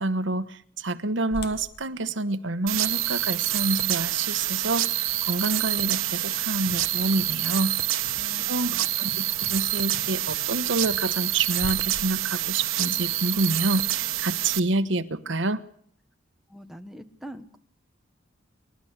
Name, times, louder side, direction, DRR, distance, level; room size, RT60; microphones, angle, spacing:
voice 1, 0.0-8.0 8.5-15.6, right 2 dB, 70° right, 1.2 m, -28 dB
sound 1, 1.3-7.3 7.8-7.9 8.5-8.7 10.8-13.5, left 2 dB, 50° left, 1.4 m, -45 dB
sound 2, 2.7-14.6, right 14 dB, 90° right, 1.1 m, -27 dB
sound 3, 5.6-5.9 6.1-6.2 6.7-7.7 8.0-10.5 10.8-11.0, right 1 dB, 35° right, 2.5 m, -47 dB
voice 2, 8.7-9.2 16.5-17.6, equal, ahead, 1.3 m, -44 dB
29.0 x 12.5 x 8.2 m
head